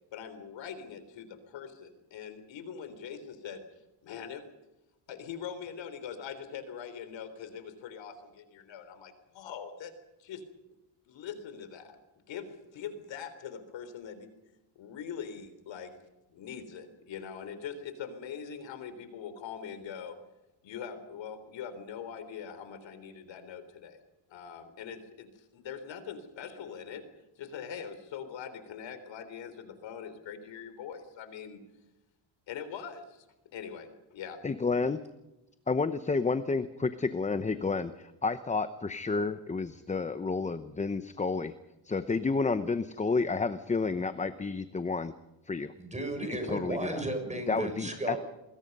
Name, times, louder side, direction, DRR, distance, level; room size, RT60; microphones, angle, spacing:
voice 1, 0.1-3.6 4.0-4.4 5.1-9.9 10.2-10.4 11.1-11.9 12.3-14.3 14.8-15.9 16.3-20.2 20.6-24.0 24.3-27.0 27.4-31.6 32.5-33.3 33.5-34.4, left 7 dB, 70° left, 10 dB, 3.8 m, -42 dB
voice 2, 34.4-35.0 35.7-41.5 41.8-45.1 45.4-45.7 46.5-47.0 47.5-48.2, left 4 dB, 15° left, 11 dB, 0.8 m, -30 dB
voice 3, 45.8-48.2, right 1 dB, 15° right, 5 dB, 6.3 m, -34 dB
27.0 x 21.5 x 5.5 m, 0.98 s
cardioid pair, 145°, 46 cm